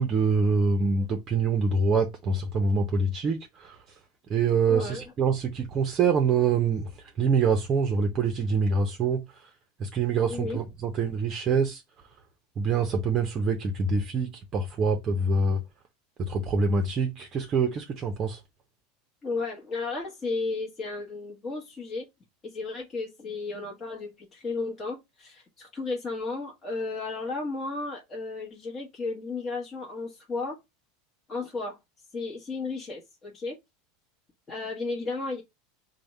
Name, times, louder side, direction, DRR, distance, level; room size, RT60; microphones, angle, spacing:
voice 1, 0.0-3.8 4.3-9.2 9.8-11.8 12.6-15.6 16.2-18.4, right 4 dB, 30° right, 0.6 m, -25 dB
voice 2, 4.7-5.1 10.3-10.6 19.2-22.1 22.4-30.6 31.3-31.8 32.1-33.6 34.5-35.4, left 3 dB, 25° left, 1.1 m, -34 dB
3.4 x 2.1 x 4.1 m
supercardioid pair, 130°, 0 cm